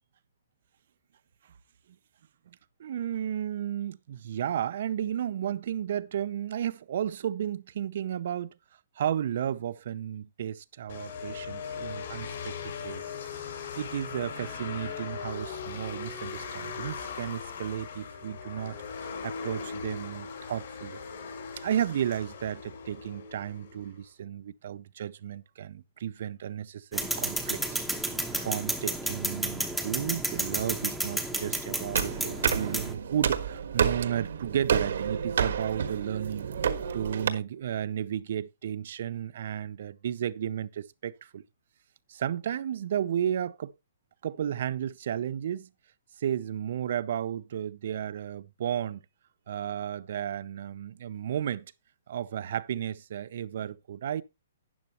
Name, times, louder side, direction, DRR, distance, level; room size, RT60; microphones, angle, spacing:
voice 1, 2.5-8.5 9.0-13.0 13.7-21.0 21.6-41.4 42.1-43.7 44.2-45.7 46.2-49.0 49.5-51.7 52.1-54.2, right 10 dB, 50° right, 0.6 m, -33 dB
sound 1, 10.9-23.9, left 6 dB, 60° left, 4.6 m, -39 dB
sound 2, 26.9-32.9, right 1 dB, ahead, 1.0 m, -32 dB
sound 3, 31.9-37.3, right 7 dB, 70° right, 1.4 m, -29 dB
12.5 x 9.7 x 2.9 m
hypercardioid pair, 165°, 0 cm